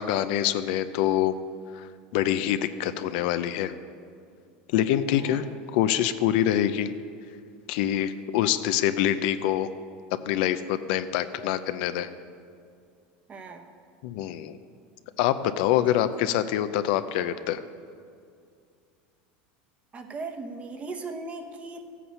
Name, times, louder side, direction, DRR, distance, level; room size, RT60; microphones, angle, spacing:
voice 1, 0.0-1.3 1.7-1.9 2.1-3.7 4.7-5.4 5.7-6.9 7.7-9.7 10.3-12.1 14.0-14.6 15.2-17.6, left 11 dB, 70° left, 11 dB, 0.6 m, -25 dB
voice 2, 13.3-13.7 15.9-16.0 19.9-21.9, right 3 dB, 25° right, 6 dB, 1.0 m, -38 dB
14.0 x 8.4 x 5.7 m, 2.3 s
supercardioid pair, 135°, 5 cm